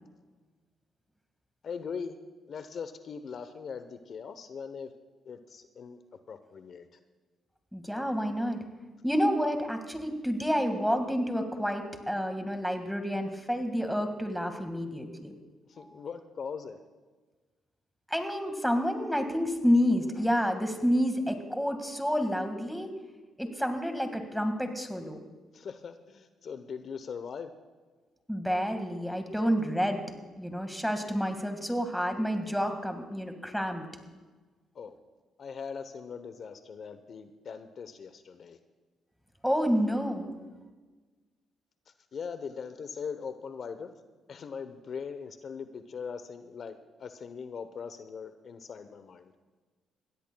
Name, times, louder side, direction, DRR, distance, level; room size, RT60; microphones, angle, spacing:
voice 1, 1.6-2.2 2.5-4.9 5.2-6.0 6.3-7.0 15.7-16.8 25.5-27.5 34.7-35.0 35.4-38.6 42.1-43.9 44.3-49.3, left 6 dB, 55° left, 9 dB, 0.8 m, -40 dB
voice 2, 7.7-8.6 9.0-15.4 18.1-22.9 23.4-25.2 28.3-30.0 30.4-33.9 39.4-40.3, equal, ahead, 5 dB, 1.8 m, -29 dB
21.5 x 16.5 x 2.3 m, 1.3 s
cardioid pair, 80°, 0 cm